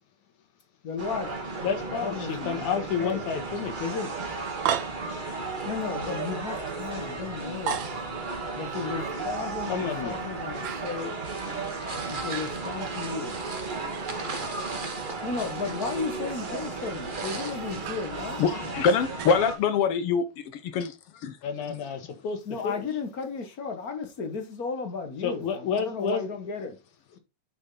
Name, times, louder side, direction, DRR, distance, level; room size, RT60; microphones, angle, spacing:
voice 1, 0.8-3.2 5.6-7.9 8.6-11.2 12.1-13.4 15.2-18.4 22.4-26.8, left 5 dB, 45° left, 1.2 m, -34 dB
sound 1, 1.0-19.5, right 3 dB, 20° right, 1.4 m, -35 dB
voice 2, 1.6-4.2 9.7-10.2 21.4-22.9 25.2-26.2, left 6 dB, 85° left, 3.0 m, -30 dB
sound 2, 4.0-11.6 11.9-19.9, right 8 dB, 85° right, 1.0 m, -39 dB
sound 3, 11.2-17.8, right 3 dB, 65° right, 0.5 m, -40 dB
voice 3, 18.4-21.4, left 5 dB, 65° left, 1.5 m, -25 dB
8.2 x 6.8 x 4.0 m
omnidirectional pair, 3.4 m